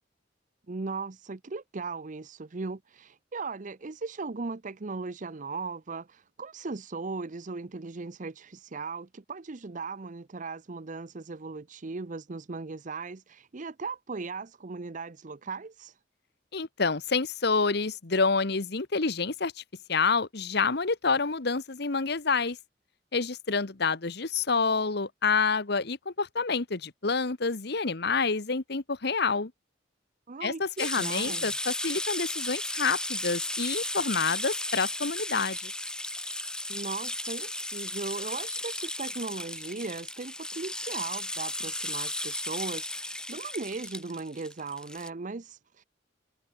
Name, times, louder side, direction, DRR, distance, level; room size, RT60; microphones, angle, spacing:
voice 1, 0.7-16.0 30.3-31.5 36.7-45.8, right 4 dB, 45° right, 0.7 m, -38 dB
voice 2, 16.5-19.6 19.9-22.6 23.1-29.5 30.4-35.7, left 4 dB, 60° left, 1.3 m, -28 dB
sound 1, 30.8-45.1, left 1 dB, 5° left, 1.8 m, -35 dB
head